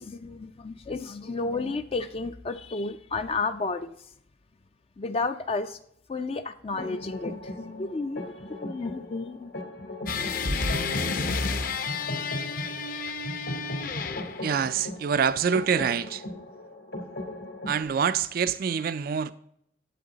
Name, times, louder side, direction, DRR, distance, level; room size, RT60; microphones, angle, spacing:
voice 1, 0.0-3.9 5.0-5.8 6.1-8.3 8.6-9.5, left 3 dB, 30° left, 0.4 m, -32 dB
sound 1, 6.8-17.8, left 1 dB, 70° left, 3.5 m, -38 dB
sound 2, 10.1-14.5, left 4 dB, 50° left, 0.7 m, -30 dB
voice 2, 14.4-16.2 17.7-19.3, right 7 dB, 50° right, 0.3 m, -26 dB
11.0 x 8.0 x 3.9 m
head